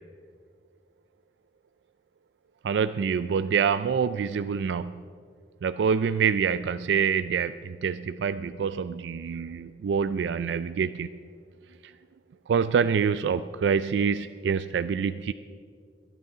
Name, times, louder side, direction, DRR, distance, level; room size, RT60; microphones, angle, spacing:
voice 1, 2.6-4.9 5.6-11.1 11.8-11.9 12.5-15.3, right 6 dB, 80° right, 12 dB, 0.3 m, -26 dB
24.5 x 9.0 x 3.9 m, 2.1 s
head